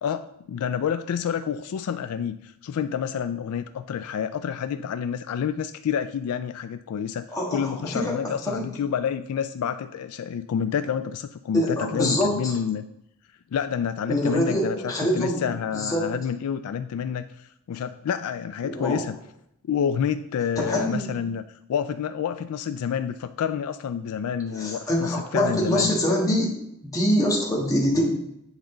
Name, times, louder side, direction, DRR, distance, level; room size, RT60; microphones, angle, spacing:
voice 1, 0.0-12.8 13.5-19.2 19.7-21.4 21.7-25.9, left 8 dB, 80° left, 10 dB, 0.3 m, -28 dB
voice 2, 7.3-8.6 11.5-12.5 14.1-15.5 15.7-16.1 18.6-19.0 20.6-21.1 24.5-26.5 26.9-28.1, equal, 15° left, -4 dB, 1.6 m, -24 dB
8.1 x 5.0 x 3.8 m, 0.78 s
head